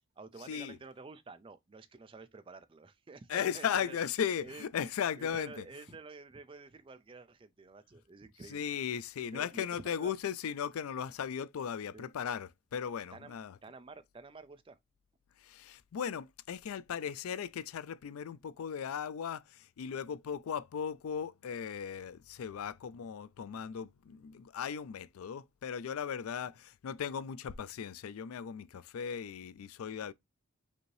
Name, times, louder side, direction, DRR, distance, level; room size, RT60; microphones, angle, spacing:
voice 1, 0.2-4.0 4.4-4.9 5.2-8.7 9.3-10.1 11.9-12.1 13.1-13.3 13.6-14.8 26.4-26.5, right 3 dB, 25° right, 0.4 m, -50 dB
voice 2, 3.3-5.6 8.5-13.6 15.4-30.1, left 8 dB, 80° left, 0.4 m, -37 dB
5.1 x 2.7 x 3.0 m
head